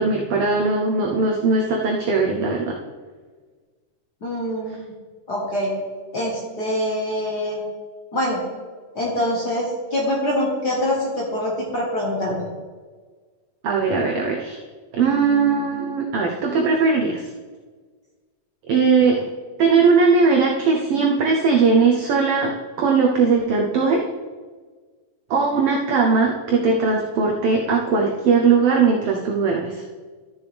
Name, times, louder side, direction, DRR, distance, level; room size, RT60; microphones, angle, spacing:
voice 1, 0.0-2.8 13.6-14.6 14.9-17.2 18.7-19.3 19.6-24.1 25.3-29.8, right 4 dB, 85° right, 0 dB, 1.3 m, -19 dB
voice 2, 4.2-4.8 5.3-5.7 6.1-7.6 8.1-8.4 8.9-12.4, left 1 dB, 45° left, -3 dB, 1.4 m, -24 dB
13.0 x 6.9 x 3.4 m, 1.5 s
omnidirectional pair, 3.7 m